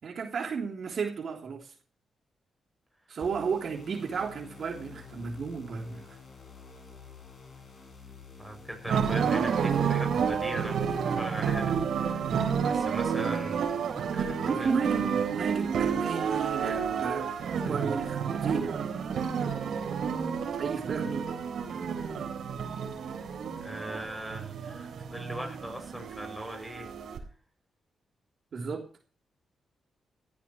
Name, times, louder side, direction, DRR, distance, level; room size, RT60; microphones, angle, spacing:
voice 1, 0.0-1.7 3.1-6.2 14.5-18.7 20.6-21.2 28.5-28.8, right 5 dB, 55° right, 1 dB, 3.5 m, -33 dB
sound 1, 3.2-11.7, left 5 dB, 40° left, 6.7 m, -49 dB
voice 2, 8.4-14.7 15.0-15.1 23.6-26.9, right 1 dB, ahead, 5 dB, 7.1 m, -40 dB
sound 2, 8.8-27.2, right 7 dB, 75° right, 3.9 m, -30 dB
17.5 x 14.5 x 3.2 m, 0.39 s
cardioid pair, 110°, 0 cm